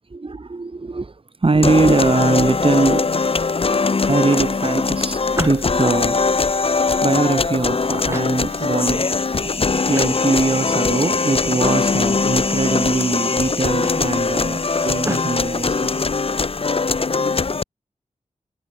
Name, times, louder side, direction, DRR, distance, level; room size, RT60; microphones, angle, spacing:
voice 1, 0.1-3.1 4.0-6.7 7.0-15.9, right 3 dB, 40° right, 4.2 m, -22 dB
sound 1, 1.6-17.6, left 4 dB, 45° left, 0.9 m, -21 dB
sound 2, 2.7-3.5 3.9-5.9 6.4-7.5 8.1-8.9 9.4-9.5 9.9-10.3 10.6-11.3 11.6-12.2 12.6-13.1 13.4-15.3, right 1 dB, 20° right, 7.1 m, -34 dB
wide cardioid pair, 110°, 14 cm